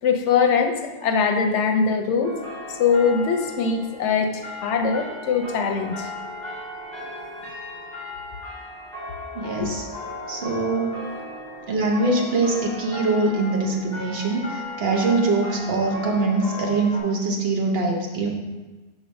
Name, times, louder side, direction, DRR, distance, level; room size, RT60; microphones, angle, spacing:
voice 1, 0.0-2.4 2.7-6.1 7.0-7.1 9.6-9.7, left 5 dB, 85° left, 5 dB, 1.0 m, -22 dB
sound 1, 2.2-17.0, left 2 dB, 10° right, 1.9 m, -36 dB
voice 2, 9.3-9.8 10.3-10.9 11.7-14.5 14.8-18.3, right 3 dB, 60° right, 0 dB, 1.1 m, -23 dB
6.0 x 3.1 x 5.1 m, 1.2 s
omnidirectional pair, 1.2 m